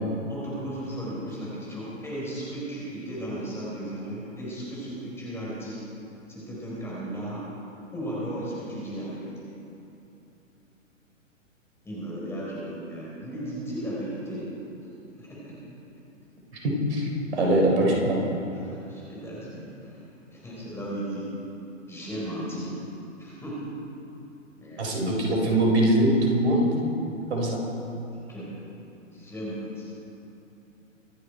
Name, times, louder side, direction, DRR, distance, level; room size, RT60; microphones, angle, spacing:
voice 1, 0.3-5.8 6.3-7.4 7.9-9.5 11.8-14.5 15.2-15.6 17.5-17.6 18.5-20.0 20.3-21.3 21.9-22.7 23.2-23.7 24.6-24.9 28.3-28.5 29.1-29.9, right 1 dB, 5° left, -6 dB, 4.2 m, -35 dB
voice 2, 16.6-18.2 24.8-26.7 27.3-27.6, right 1 dB, 55° right, 0 dB, 3.8 m, -22 dB
24.5 x 9.8 x 4.5 m, 2.9 s
figure-of-eight pair, 120°, 39 cm